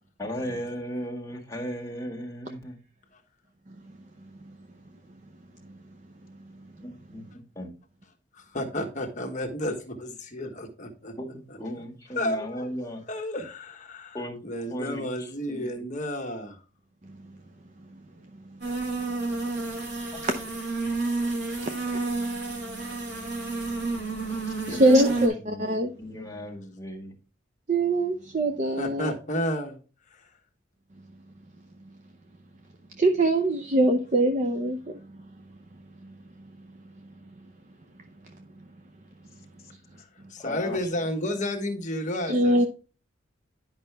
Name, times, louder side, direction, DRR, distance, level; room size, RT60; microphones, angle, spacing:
voice 1, 0.2-2.8 6.8-7.7 11.2-13.0 14.1-14.4 14.7-15.8 24.7-25.7 26.0-27.1 40.4-40.8, equal, 15° left, 1.8 m, -36 dB
voice 2, 8.3-11.1 12.1-12.7 13.1-14.2 14.4-16.6 28.8-29.8 30.1-30.2 40.0-42.7, left 1 dB, 40° left, 1.3 m, -32 dB
sound 1, 18.6-25.3, right 3 dB, 55° right, 2.7 m, -30 dB
voice 3, 24.7-25.9 27.7-29.1 33.0-34.8 42.3-42.7, right 1 dB, 35° right, 0.6 m, -22 dB
10.5 x 5.6 x 3.4 m
head